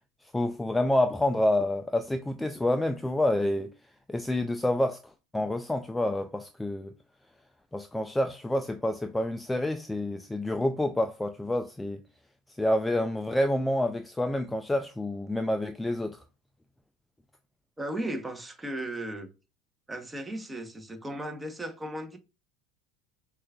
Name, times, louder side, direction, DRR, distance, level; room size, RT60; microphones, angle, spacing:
voice 1, 0.3-3.7 4.1-5.0 5.3-6.9 7.7-12.0 12.6-16.2, left 1 dB, 10° left, 0.3 m, -28 dB
voice 2, 17.8-19.3 19.9-22.2, right 1 dB, 15° right, 0.9 m, -36 dB
6.2 x 2.4 x 2.3 m
hypercardioid pair, 80°, 0 cm